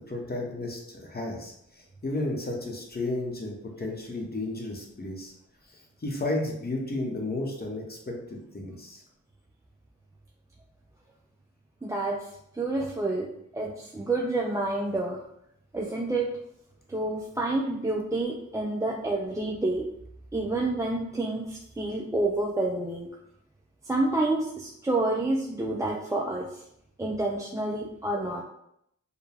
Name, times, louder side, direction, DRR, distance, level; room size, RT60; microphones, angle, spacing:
voice 1, 0.1-5.3 6.0-9.0, left 2 dB, 30° left, 0 dB, 0.8 m, -33 dB
voice 2, 11.8-13.3 13.5-15.2 15.7-16.3 16.9-19.9 20.3-23.1 23.8-26.6 27.0-28.4, right 2 dB, 10° right, -2 dB, 0.3 m, -28 dB
4.7 x 2.1 x 3.3 m, 0.76 s
wide cardioid pair, 140°, 32 cm